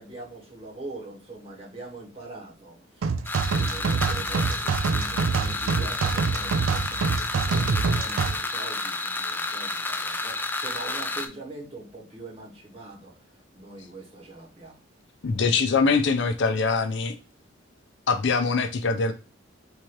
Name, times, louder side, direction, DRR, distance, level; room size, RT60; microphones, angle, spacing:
voice 1, 0.0-3.1 3.5-13.1 13.5-14.8, right 2 dB, 30° right, -3 dB, 1.7 m, -42 dB
sound 1, 3.0-8.3, right 4 dB, 75° right, 0.4 m, -25 dB
sound 2, 3.3-11.3, left 2 dB, 10° left, 0.4 m, -31 dB
voice 2, 15.2-17.1 18.1-19.1, left 4 dB, 60° left, 7 dB, 0.6 m, -23 dB
3.7 x 3.0 x 4.6 m, 0.32 s
head